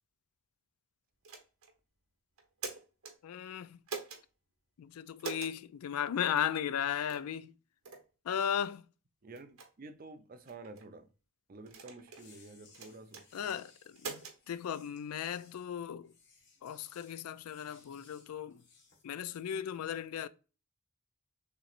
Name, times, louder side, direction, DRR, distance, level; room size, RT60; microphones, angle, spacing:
sound 1, 1.2-1.7 2.4-3.1 3.9-4.2 5.2-5.6 6.4-6.5 7.1-7.3 7.8-8.0 8.6-8.8 9.3-9.7 10.5-10.9 11.7-12.3 12.7-13.2 14.0-14.4, right 5 dB, 75° right, 1.1 m, -43 dB
voice 1, 3.2-3.8 4.8-7.5 8.3-8.8 13.3-14.2 14.5-16.1 16.6-18.6 19.0-20.3, left 9 dB, 85° left, 0.3 m, -36 dB
voice 2, 9.2-11.1 11.5-13.5, right 3 dB, 40° right, 0.5 m, -50 dB
sound 2, 12.1-19.0, left 4 dB, 55° left, 1.4 m, -63 dB
6.7 x 3.0 x 2.5 m
head